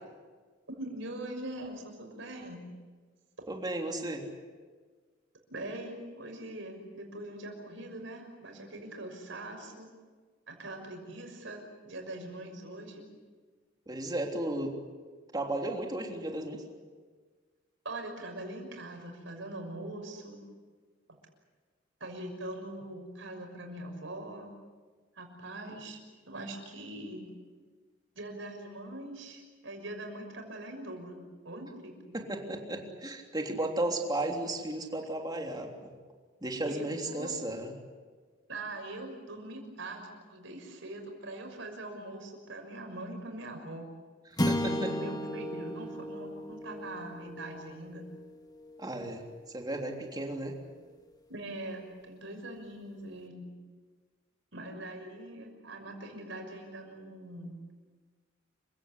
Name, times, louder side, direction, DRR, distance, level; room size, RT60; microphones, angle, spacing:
voice 1, 0.7-2.6 3.4-3.5 5.5-9.9 10.5-11.6 11.9-13.0 17.8-20.4 22.0-24.5 25.2-26.0 26.3-27.3 28.1-32.2 36.6-37.4 38.5-43.9 44.7-48.0 51.3-53.5 54.5-57.6, right 1 dB, 70° right, 3 dB, 6.3 m, -42 dB
voice 2, 3.5-4.2 13.9-14.8 15.3-16.6 32.1-35.9 36.4-37.7 44.3-44.9 48.8-49.2 49.5-50.6, right 1 dB, 20° right, 2 dB, 3.3 m, -34 dB
sound 1, 44.4-48.8, left 1 dB, 20° left, 1.7 m, -35 dB
28.0 x 16.5 x 10.0 m, 1.5 s
head